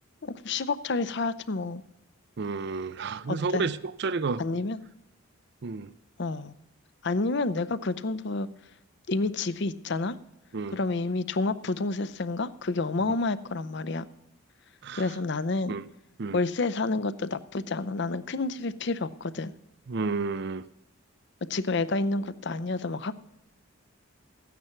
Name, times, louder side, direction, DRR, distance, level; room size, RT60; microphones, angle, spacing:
voice 1, 0.2-1.8 3.3-3.7 4.4-4.8 6.2-6.5 7.0-8.5 9.1-10.2 10.7-14.1 14.9-15.7 16.3-19.5 21.5-23.2, left 3 dB, 55° left, 15 dB, 0.6 m, -29 dB
voice 2, 2.4-4.4 5.6-5.9 10.5-10.8 13.0-13.2 14.8-15.1 15.7-15.8 16.2-16.4 19.9-20.6, right 4 dB, 50° right, 16 dB, 0.4 m, -31 dB
14.0 x 9.4 x 5.8 m, 0.83 s
head